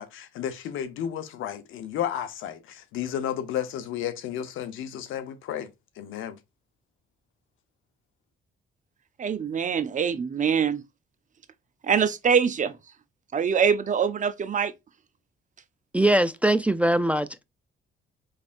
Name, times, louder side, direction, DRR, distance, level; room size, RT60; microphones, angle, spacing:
voice 1, 0.0-5.7 6.0-6.4, left 10 dB, 85° left, 0.8 m, -32 dB
voice 2, 9.2-10.8 11.8-12.7 13.3-14.7, right 7 dB, 40° right, 0.6 m, -24 dB
voice 3, 15.9-17.4, right 1 dB, 5° right, 0.3 m, -22 dB
5.2 x 3.3 x 2.5 m
cardioid pair, 90°, 20 cm